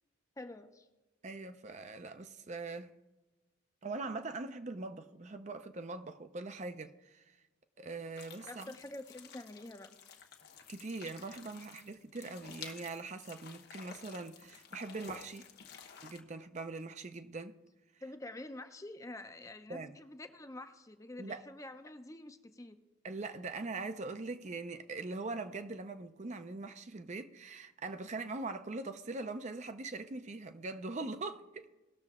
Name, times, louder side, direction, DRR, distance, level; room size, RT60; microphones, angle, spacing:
voice 1, 0.4-0.9 8.4-10.3 18.0-22.8, left 1 dB, 15° left, 0.6 m, -47 dB
voice 2, 1.2-2.9 3.8-7.2 7.8-8.7 10.7-15.5 16.0-17.6 19.7-20.0 21.2-21.4 23.0-31.7, right 3 dB, 35° right, 0.5 m, -42 dB
sound 1, 8.2-16.2, left 7 dB, 50° left, 1.1 m, -52 dB
18.5 x 6.6 x 3.6 m
head